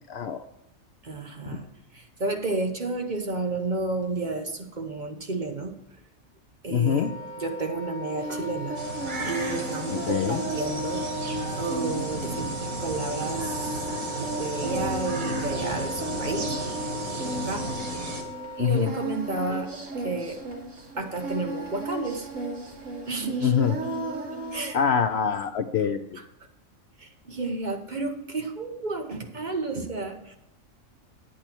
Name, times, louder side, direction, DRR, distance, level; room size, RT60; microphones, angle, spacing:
voice 1, 0.1-0.4 6.7-7.1 9.9-10.4 18.6-18.9 23.4-23.8 24.7-26.2, left 7 dB, 65° left, 10 dB, 0.7 m, -25 dB
voice 2, 1.0-1.7 1.9-5.7 6.6-7.1 7.4-8.8 9.2-11.1 11.6-13.7 14.4-16.8 17.0-17.7 18.6-20.4 21.0-22.3 23.1-23.5 24.5-24.8 26.2-26.3 27.0-30.4, right 3 dB, 40° right, 4 dB, 1.1 m, -31 dB
Wind instrument woodwind instrument, 6.8-18.7, left 1 dB, 10° left, 1.7 m, -38 dB
Singing, 8.2-24.8, right 1 dB, 65° right, 2.3 m, -35 dB
sound 1, 8.7-18.2, right 3 dB, 90° right, 2.2 m, -34 dB
10.0 x 8.9 x 4.5 m, 0.87 s
omnidirectional pair, 1.4 m